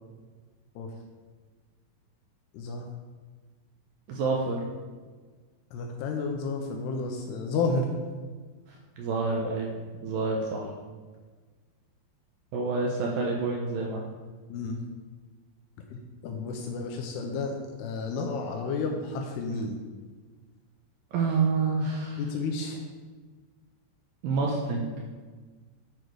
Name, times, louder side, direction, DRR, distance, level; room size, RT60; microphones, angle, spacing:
voice 1, 2.5-2.9 5.7-7.9 14.5-14.8 15.9-19.7 22.2-22.8, left 3 dB, 80° left, 2 dB, 2.6 m, -31 dB
voice 2, 4.1-4.6 8.7-9.7 10.0-10.7 12.5-14.1 21.1-22.2 24.2-24.9, right 4 dB, 75° right, -1 dB, 2.1 m, -28 dB
11.0 x 4.9 x 4.6 m, 1.4 s
omnidirectional pair, 5.0 m